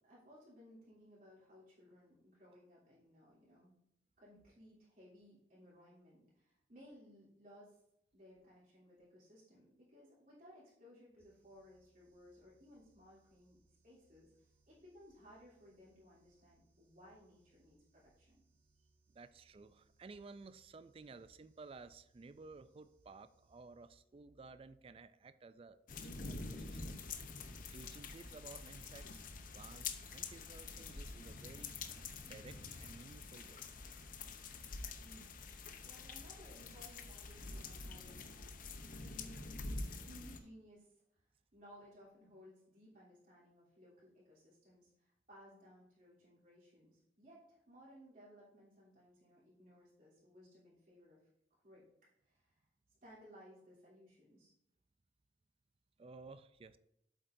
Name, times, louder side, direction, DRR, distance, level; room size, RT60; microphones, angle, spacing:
voice 1, 0.0-3.7 4.2-7.8 8.1-13.6 13.8-14.3 14.7-18.3 35.0-35.4 35.8-38.3 39.1-39.4 40.0-40.9 41.5-51.2 51.6-51.8 52.2-52.6 53.0-54.5, equal, 45° right, -8 dB, 3.1 m, -60 dB
sound 1, 11.2-24.3, right 2 dB, 15° right, 1.6 m, -75 dB
voice 2, 19.1-27.0 27.7-29.2 29.5-31.8 32.3-33.7 56.0-56.8, right 3 dB, 30° right, 13 dB, 0.3 m, -55 dB
sound 2, 25.9-40.4, left 4 dB, 45° left, 0.7 m, -47 dB
8.2 x 7.6 x 2.6 m, 0.80 s
head